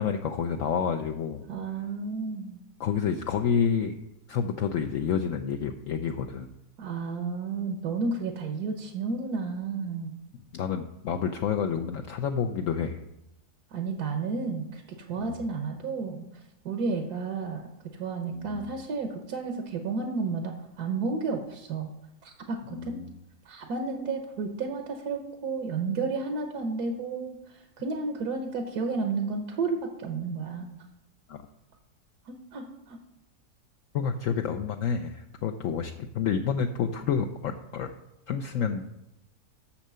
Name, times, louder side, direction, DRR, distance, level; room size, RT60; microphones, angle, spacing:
voice 1, 0.0-1.4 2.8-4.0 4.3-6.5 10.5-13.0 15.2-15.4 18.3-18.7 22.7-23.2 31.3-31.5 33.9-37.9 38.3-38.8, left 7 dB, 65° left, 5 dB, 0.9 m, -29 dB
voice 2, 1.5-2.6 6.8-10.1 13.7-16.2 16.6-17.7 18.0-21.9 22.2-23.0 23.5-30.7 32.3-33.0, right 4 dB, 80° right, 4 dB, 1.5 m, -32 dB
7.3 x 6.4 x 6.8 m, 0.88 s
omnidirectional pair, 1.7 m